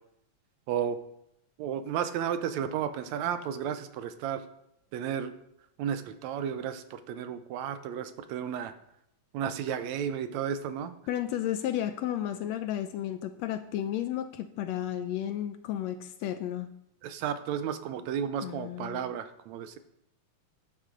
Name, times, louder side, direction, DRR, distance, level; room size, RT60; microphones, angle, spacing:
voice 1, 0.7-1.0 1.6-4.4 4.9-5.3 5.8-8.7 9.3-10.9 17.0-19.8, right 8 dB, 75° right, 11 dB, 1.8 m, -33 dB
voice 2, 11.1-16.7 18.4-19.0, left 11 dB, 80° left, 10 dB, 1.6 m, -33 dB
12.0 x 9.8 x 3.8 m, 0.79 s
omnidirectional pair, 3.4 m